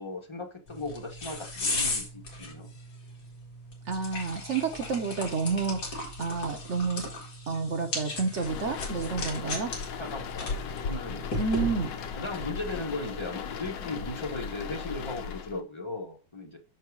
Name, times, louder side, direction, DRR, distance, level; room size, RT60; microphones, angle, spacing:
voice 1, 0.0-2.8 9.3-9.6 10.0-11.4 12.1-16.6, left 2 dB, 25° left, 2 dB, 0.6 m, -37 dB
sound 1, 0.7-12.1, left 2 dB, 50° left, 2.3 m, -37 dB
voice 2, 3.9-7.1 7.5-9.7 11.4-11.9, right 5 dB, 55° right, 4 dB, 0.8 m, -30 dB
sound 2, 8.4-15.6, left 6 dB, 65° left, 1.3 m, -37 dB
6.1 x 4.7 x 4.7 m, 0.34 s
omnidirectional pair, 2.3 m